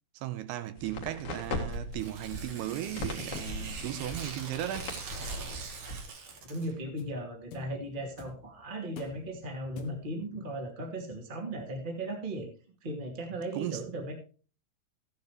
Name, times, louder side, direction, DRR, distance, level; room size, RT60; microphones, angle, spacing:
voice 1, 0.1-4.9 13.5-13.9, right 13 dB, 85° right, 2.9 m, -36 dB
sound 1, 0.8-6.1, left 1 dB, 45° left, 2.3 m, -39 dB
sound 2, 1.4-10.3, left 7 dB, 70° left, 2.7 m, -52 dB
Tearing, 1.9-6.7, right 5 dB, 55° right, 2.6 m, -43 dB
voice 2, 6.5-12.5 12.8-14.1, right 1 dB, 15° right, 1.7 m, -37 dB
14.5 x 9.6 x 3.2 m
omnidirectional pair, 4.6 m